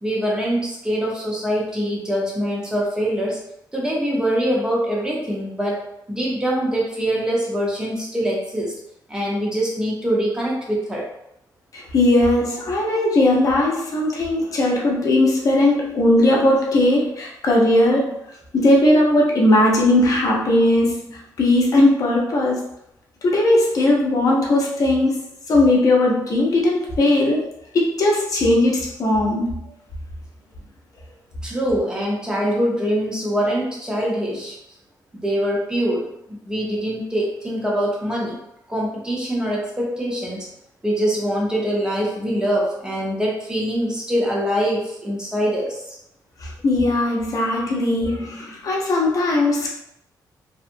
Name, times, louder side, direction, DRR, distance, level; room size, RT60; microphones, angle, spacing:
voice 1, 0.0-3.4 3.7-5.8 6.1-8.7 9.1-11.1 31.4-34.6 35.1-38.4 38.7-40.4 40.8-46.0, equal, 10° right, -3 dB, 0.8 m, -23 dB
voice 2, 11.7-18.2 18.5-22.6 23.2-25.1 25.5-27.4 27.7-29.6 46.4-49.7, left 1 dB, 50° left, -2 dB, 0.7 m, -18 dB
2.8 x 2.3 x 2.6 m, 0.80 s
cardioid pair, 130°, 8 cm